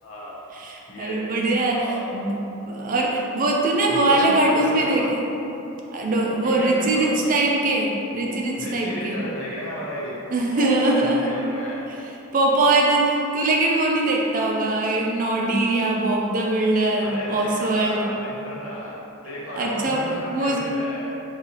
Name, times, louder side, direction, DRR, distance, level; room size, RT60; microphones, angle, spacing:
voice 1, 0.0-0.4 0.9-1.3 1.7-2.1 3.9-5.2 6.4-7.2 8.6-11.8 17.0-21.1, equal, 80° left, -7 dB, 0.9 m, -33 dB
voice 2, 0.5-5.2 5.9-9.2 10.3-11.3 12.3-18.1 19.5-20.0 20.3-20.6, right 2 dB, 40° right, -1 dB, 0.4 m, -22 dB
3.9 x 2.7 x 2.8 m, 3.0 s
head